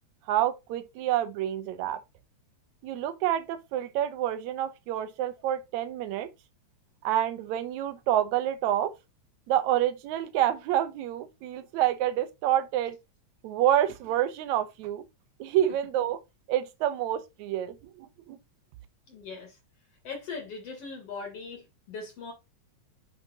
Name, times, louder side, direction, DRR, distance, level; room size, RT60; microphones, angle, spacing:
voice 1, 0.3-2.0 2.8-6.3 7.0-8.9 9.5-13.0 13.4-15.0 15.4-16.2 16.5-18.4, right 12 dB, 75° right, 2.1 m, -28 dB
voice 2, 19.1-19.6 20.0-22.3, left 4 dB, 55° left, 2.7 m, -40 dB
6.5 x 6.2 x 2.9 m
omnidirectional pair, 3.4 m